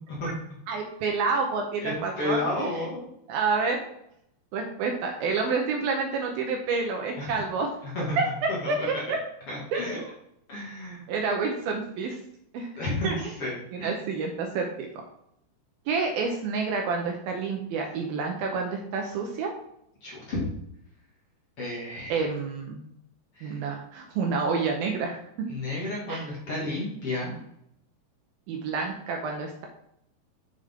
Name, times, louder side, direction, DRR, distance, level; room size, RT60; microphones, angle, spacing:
voice 1, 0.7-2.7 3.3-3.8 4.5-7.7 8.2-9.2 9.7-10.1 11.1-12.2 12.5-12.7 13.0-13.3 13.7-14.9 15.9-19.5 22.1-22.8 23.4-25.2 26.1-26.3 28.5-29.7, right 4 dB, 70° right, 2 dB, 2.5 m, -28 dB
voice 2, 1.8-3.1 7.2-7.3 7.8-8.2 8.6-9.0 9.5-10.0 10.5-11.0 12.8-13.1 13.4-13.9 20.0-20.4 21.6-22.2 23.4-23.6 25.5-27.4, left 2 dB, 40° left, -5 dB, 2.5 m, -32 dB
7.9 x 7.3 x 3.7 m, 0.75 s
omnidirectional pair, 4.9 m